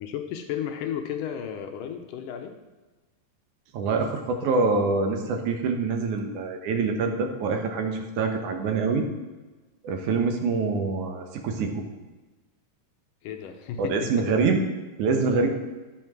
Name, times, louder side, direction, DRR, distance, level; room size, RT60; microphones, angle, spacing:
voice 1, 0.0-2.5 13.2-14.1, left 9 dB, 75° left, 5 dB, 2.4 m, -33 dB
voice 2, 3.7-9.1 9.8-11.8 13.8-14.7 15.0-15.5, right 4 dB, 65° right, 4 dB, 2.4 m, -25 dB
12.5 x 7.8 x 6.1 m, 1.2 s
omnidirectional pair, 4.0 m